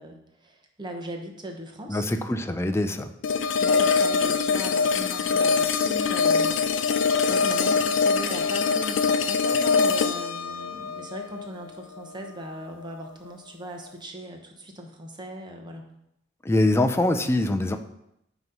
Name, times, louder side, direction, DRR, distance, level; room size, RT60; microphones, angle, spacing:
voice 1, 0.0-2.1 3.6-15.9, right 1 dB, 25° right, 2 dB, 1.0 m, -39 dB
voice 2, 1.9-3.1 16.5-17.8, left 1 dB, 15° left, 6 dB, 0.4 m, -23 dB
sound 1, 3.2-12.3, left 5 dB, 70° left, 0.5 m, -23 dB
9.2 x 3.1 x 5.3 m, 0.81 s
head